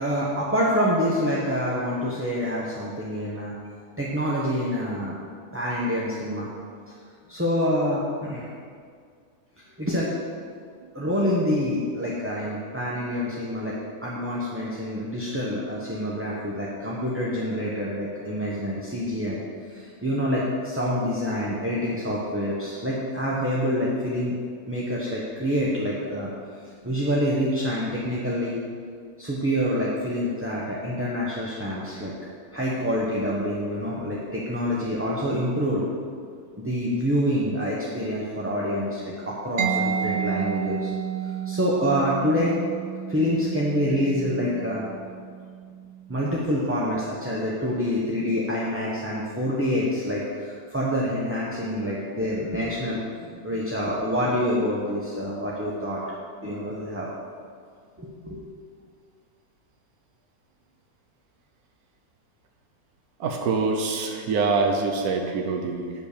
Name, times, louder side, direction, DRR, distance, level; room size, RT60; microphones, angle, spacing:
voice 1, 0.0-3.6 4.0-5.2 5.5-6.5 6.9-7.0 7.3-8.5 9.8-10.1 10.9-13.7 14.0-19.4 19.7-24.3 24.7-26.3 26.8-28.6 29.2-32.1 32.5-35.8 36.6-40.9 41.2-42.5 43.1-44.8 46.1-53.0 53.3-56.1 56.4-57.1 58.0-58.4, equal, 10° right, -6 dB, 0.9 m, -26 dB
voice 2, 10.8-11.1 63.2-65.9, right 4 dB, 90° right, 3 dB, 1.3 m, -25 dB
Mallet percussion, 39.6-47.1, right 8 dB, 60° right, 0.8 m, -31 dB
9.1 x 5.7 x 6.6 m, 2.1 s
omnidirectional pair, 1.6 m